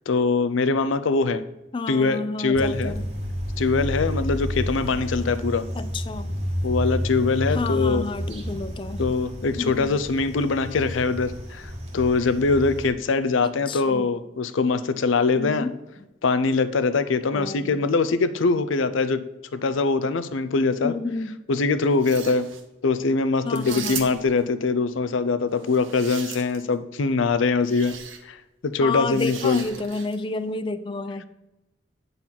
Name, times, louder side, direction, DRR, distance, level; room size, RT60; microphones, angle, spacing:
voice 1, 0.1-1.4 1.9-2.9 3.6-5.6 6.6-8.0 9.0-15.7 16.2-19.2 19.5-20.9 21.5-22.5 22.8-28.0 28.2-28.4 28.6-29.6, left 4 dB, 80° left, 12 dB, 0.5 m, -23 dB
voice 2, 1.7-3.0 5.7-6.3 7.5-9.1 9.6-9.9 13.4-14.1 15.4-15.8 17.3-17.9 20.8-21.4 23.4-24.1 28.8-31.2, left 3 dB, 25° left, 13 dB, 0.4 m, -30 dB
sound 1, 2.5-12.9, equal, 35° right, 1.2 m, -30 dB
sound 2, 21.9-22.6 23.5-24.4 25.6-26.7 27.6-28.2 29.1-30.2, right 7 dB, 80° right, 1.0 m, -37 dB
9.0 x 4.0 x 5.8 m, 0.97 s
head